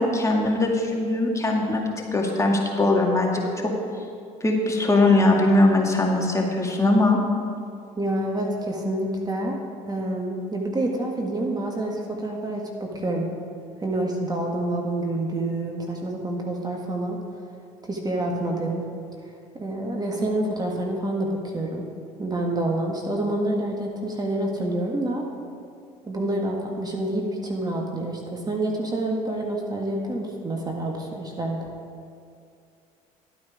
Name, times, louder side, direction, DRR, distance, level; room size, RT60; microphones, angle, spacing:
voice 1, 0.0-3.4 4.4-7.2, left 2 dB, 15° left, 0 dB, 1.9 m, -21 dB
voice 2, 8.0-9.6 9.9-13.3 13.8-17.2 17.9-18.8 19.6-21.9 22.2-25.2 26.1-31.7, right 1 dB, 20° right, 0 dB, 1.6 m, -27 dB
11.5 x 8.7 x 4.9 m, 2.3 s
hypercardioid pair, 70°, 18 cm